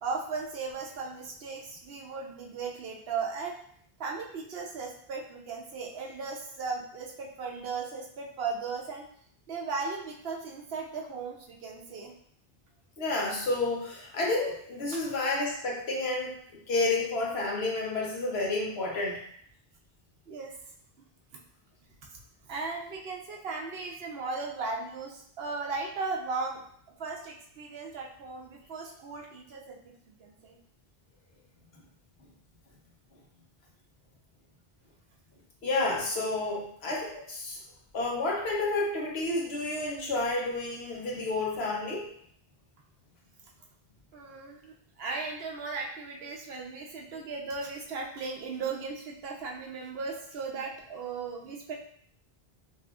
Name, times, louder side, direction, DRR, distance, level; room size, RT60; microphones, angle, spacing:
voice 1, 0.0-3.6 4.0-9.1 9.5-12.1 20.3-20.5 22.5-26.6 27.0-29.8 30.2-30.6 44.1-51.7, right 4 dB, 70° right, -1 dB, 1.0 m, -36 dB
voice 2, 13.0-16.4 16.7-19.2 35.6-37.6 37.9-42.1, left 2 dB, 85° left, -2 dB, 1.1 m, -30 dB
5.2 x 2.5 x 2.4 m, 0.64 s
omnidirectional pair, 1.0 m